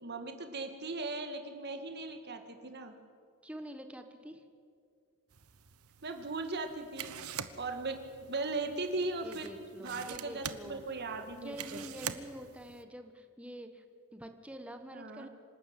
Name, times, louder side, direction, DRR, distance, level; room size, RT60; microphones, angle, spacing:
voice 1, 0.0-3.0 6.0-9.5 9.8-11.8 14.9-15.3, right 3 dB, 50° right, 6 dB, 2.0 m, -38 dB
voice 2, 3.4-4.4 9.2-10.8 11.4-13.8 14.1-15.3, equal, 5° right, 7 dB, 1.2 m, -46 dB
sound 1, 5.3-12.8, right 8 dB, 80° right, 1.0 m, -45 dB
26.0 x 12.5 x 8.9 m, 2.3 s
head